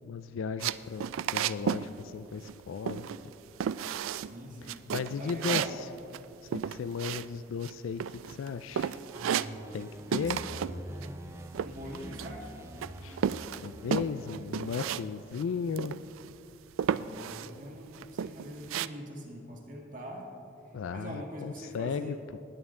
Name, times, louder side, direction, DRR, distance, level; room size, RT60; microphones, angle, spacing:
voice 1, 0.0-3.1 4.9-5.9 6.5-9.0 9.7-10.4 13.0-13.2 13.6-15.9 20.7-22.2, left 6 dB, 80° left, 13 dB, 0.4 m, -35 dB
sound 1, 0.6-1.9 2.1-2.6 2.9-3.3 3.6-4.3 4.7-7.7 8.0-8.5 8.8-9.9 10.1-10.8 11.0-12.5 12.8-15.0 15.3-15.4 15.8-16.3 16.8-17.5 17.9-18.9, right 8 dB, 85° right, 0.3 m, -33 dB
voice 2, 4.1-4.8 5.1-5.8 10.0-11.2 11.5-12.6 16.9-20.3 20.7-22.2, equal, 40° right, 0 dB, 1.8 m, -43 dB
sound 2, 9.1-14.5, right 1 dB, 15° right, 0.5 m, -45 dB
19.0 x 9.4 x 3.7 m, 2.8 s
head